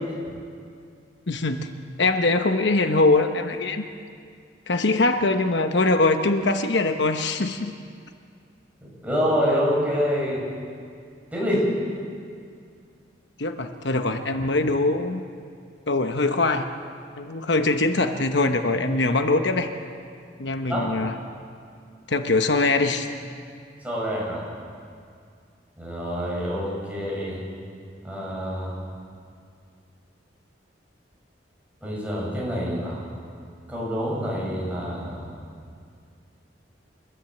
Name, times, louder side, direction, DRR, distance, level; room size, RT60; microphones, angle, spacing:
voice 1, 1.3-1.7 2.0-3.9 4.7-7.7 13.4-15.2 15.9-16.7 17.2-19.7 20.4-21.1 22.1-23.1, left 2 dB, 70° left, 6 dB, 1.0 m, -22 dB
voice 2, 8.8-10.4 11.3-11.7 20.7-20.9 23.8-24.4 25.8-27.4 28.0-28.7 31.8-33.0 33.7-35.3, equal, 10° right, -5 dB, 7.1 m, -26 dB
29.0 x 14.0 x 7.9 m, 2.3 s
head